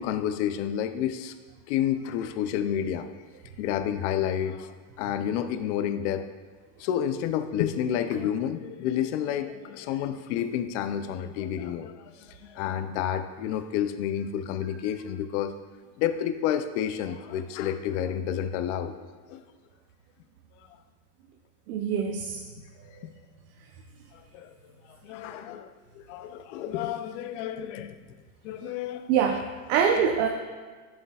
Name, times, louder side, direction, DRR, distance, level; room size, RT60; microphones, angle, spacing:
voice 1, 0.0-1.3 1.7-3.1 3.6-6.3 6.8-15.5 16.0-18.9 19.3-19.4 24.3-24.5 25.0-28.0 28.4-29.1, left 9 dB, 45° left, 9 dB, 0.5 m, -30 dB
voice 2, 21.7-22.4 23.0-23.1 29.1-30.3, right 7 dB, 65° right, 2 dB, 0.8 m, -25 dB
10.5 x 7.7 x 2.3 m, 1.4 s
supercardioid pair, 160°, 50 cm